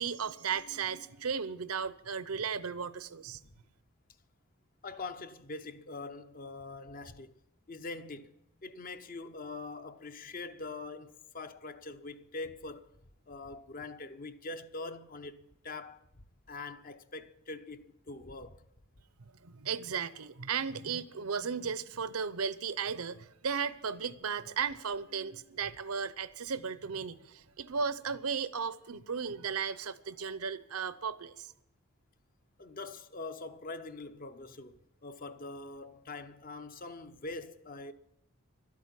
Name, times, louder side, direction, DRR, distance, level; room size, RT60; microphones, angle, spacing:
voice 1, 0.0-3.4 19.2-31.5, right 6 dB, 85° right, 0.8 m, -35 dB
voice 2, 4.8-7.4 7.7-8.3 8.6-12.9 13.3-16.0 16.5-18.6 32.6-37.9, left 3 dB, 40° left, 0.7 m, -43 dB
12.5 x 8.5 x 9.4 m
head